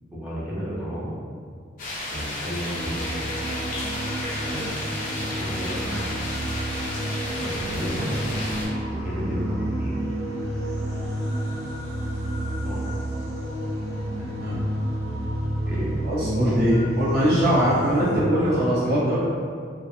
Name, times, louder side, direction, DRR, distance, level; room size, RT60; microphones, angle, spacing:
voice 1, 0.1-1.1 2.1-3.2 4.4-6.1 7.4-8.1 8.9-9.9 12.6-12.9 15.6-15.9 18.4-18.5, equal, 10° right, -8 dB, 0.5 m, -33 dB
sound 1, 1.8-8.7, left 1 dB, 45° left, 0.6 m, -32 dB
sound 2, 2.7-18.2, right 1 dB, 80° right, 1.0 m, -30 dB
voice 2, 16.0-19.2, equal, 55° right, -10 dB, 0.8 m, -21 dB
2.4 x 2.3 x 2.5 m, 2.1 s
head